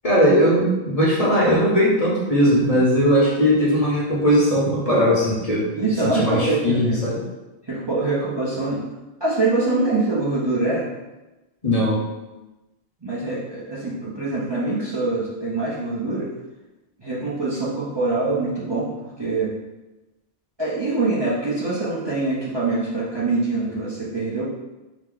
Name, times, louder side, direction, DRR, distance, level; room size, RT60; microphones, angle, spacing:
voice 1, 0.0-5.7 6.1-7.2 11.6-12.0, equal, 35° left, -6 dB, 0.9 m, -19 dB
voice 2, 5.7-7.0 7.6-8.8 9.2-10.9 13.0-16.3 17.0-18.9 19.2-19.5 20.6-24.4, right 3 dB, 25° right, -8 dB, 0.8 m, -24 dB
4.7 x 2.2 x 3.7 m, 1.1 s
omnidirectional pair, 1.1 m